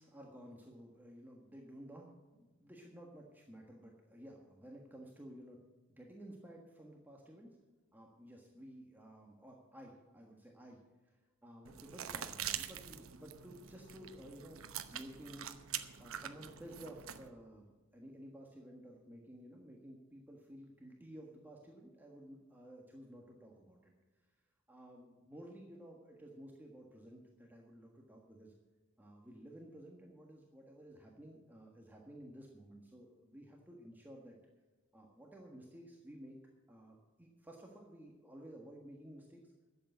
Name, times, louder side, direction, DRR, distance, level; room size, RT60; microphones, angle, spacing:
voice 1, 0.0-7.6 7.9-14.6 14.9-15.5 16.0-17.7 17.9-24.3 24.7-28.5 29.0-34.4 34.9-36.4 36.7-39.5, equal, 10° right, -1 dB, 1.4 m, -54 dB
sound 1, 11.6-17.3, right 10 dB, 85° right, 0.9 m, -45 dB
12.0 x 8.2 x 7.8 m, 1.3 s
head